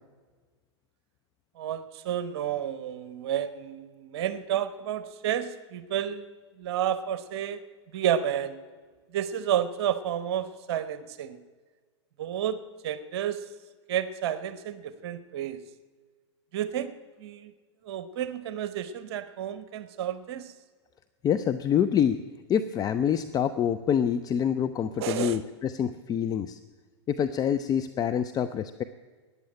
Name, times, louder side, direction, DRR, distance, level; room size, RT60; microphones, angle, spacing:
voice 1, 1.6-6.3 6.6-7.6 7.9-8.6 9.1-11.4 12.2-12.6 12.8-13.5 13.9-15.6 16.5-16.9 17.2-17.5 17.8-20.5 25.0-25.4, right 10 dB, 60° right, 13 dB, 1.1 m, -31 dB
voice 2, 21.2-22.2 22.5-26.6 27.1-28.8, left 8 dB, 25° left, 11 dB, 0.5 m, -26 dB
14.0 x 9.7 x 8.7 m, 1.5 s
hypercardioid pair, 110°, 15 cm